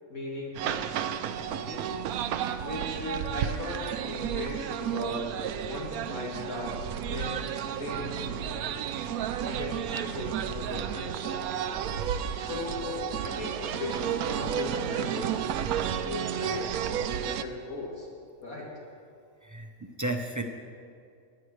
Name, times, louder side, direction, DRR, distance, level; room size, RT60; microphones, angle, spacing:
voice 1, 0.1-1.9 2.6-6.8 7.1-8.7 9.4-11.5 12.3-18.1 18.4-18.7, left 2 dB, 80° left, -4 dB, 3.0 m, -38 dB
sound 1, 0.6-17.4, right 9 dB, 90° right, 1.0 m, -32 dB
voice 2, 19.4-20.4, right 2 dB, 20° right, 3 dB, 0.5 m, -33 dB
19.0 x 10.5 x 3.2 m, 2.3 s
omnidirectional pair, 1.5 m